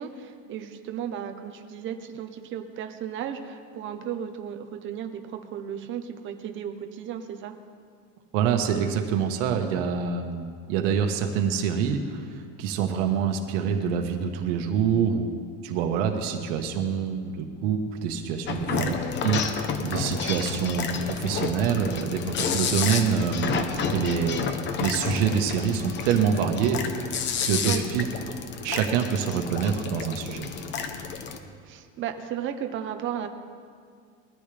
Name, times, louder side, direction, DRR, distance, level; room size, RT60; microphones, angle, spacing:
voice 1, 0.0-7.5 18.7-18.9 27.6-27.8 31.6-33.3, right 9 dB, 30° right, 6 dB, 1.0 m, -34 dB
voice 2, 8.3-15.3 15.6-18.9 19.2-24.5 24.8-26.8 27.4-28.0 28.6-30.5, right 7 dB, 80° right, 4 dB, 1.5 m, -26 dB
sound 1, 18.5-31.4, left 6 dB, 30° left, 1.0 m, -30 dB
21.5 x 13.5 x 3.5 m, 2.1 s
cardioid pair, 165°, 37 cm